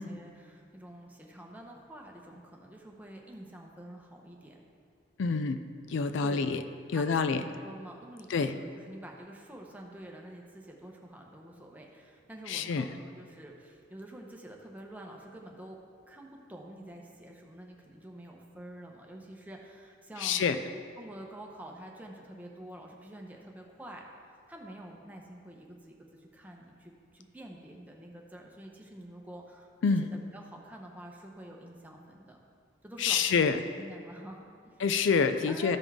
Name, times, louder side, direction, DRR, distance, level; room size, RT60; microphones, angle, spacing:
voice 1, 0.0-4.6 6.2-6.5 6.9-15.8 16.1-20.5 21.0-32.4 32.8-34.8 35.5-35.8, right 1 dB, 10° right, 0 dB, 0.8 m, -48 dB
voice 2, 5.2-5.6 5.9-6.6 6.9-7.4 8.3-8.5 12.5-12.9 20.2-20.6 29.8-30.1 33.0-33.6 34.8-35.8, left 5 dB, 70° left, 10 dB, 0.4 m, -27 dB
13.5 x 5.3 x 3.6 m, 2.2 s
head